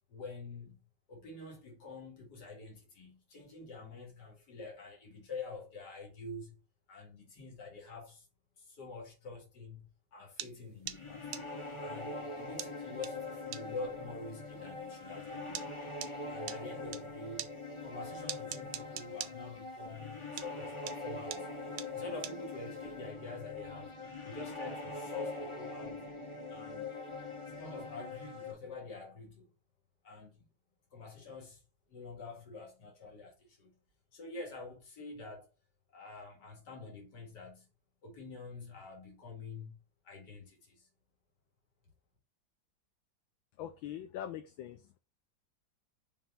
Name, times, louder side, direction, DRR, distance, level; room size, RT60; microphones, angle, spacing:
voice 1, 0.1-0.8 1.1-6.6 6.9-8.3 8.6-11.3 11.8-15.7 16.3-17.5 17.8-21.5 21.9-23.9 24.2-26.1 26.5-26.9 27.5-29.5 30.0-30.4 30.9-31.6 31.9-33.7 34.1-35.5 35.9-37.7 38.0-39.8 40.0-40.9, left 3 dB, 55° left, 2.6 m, -46 dB
sound 1, 10.4-17.0 17.4-20.1 20.4-23.0, right 11 dB, 75° right, 1.4 m, -43 dB
sound 2, 10.9-28.5, left 2 dB, 20° left, 0.8 m, -43 dB
voice 2, 43.6-45.0, left 11 dB, 80° left, 1.5 m, -42 dB
5.7 x 3.5 x 5.5 m
omnidirectional pair, 2.1 m